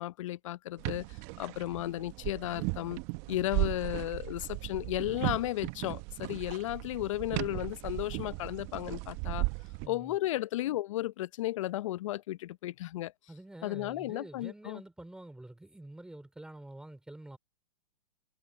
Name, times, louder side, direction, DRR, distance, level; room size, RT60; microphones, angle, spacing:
voice 1, 0.0-3.0 3.3-9.5 9.9-13.1 13.6-14.8, left 15 dB, 55° left, 0.7 m, -34 dB
sound 1, 0.8-9.9, right 25 dB, 35° right, 0.9 m, -36 dB
voice 2, 9.8-10.2 13.3-17.4, right 1 dB, 5° right, 3.5 m, -48 dB
hypercardioid pair, 125°, 19 cm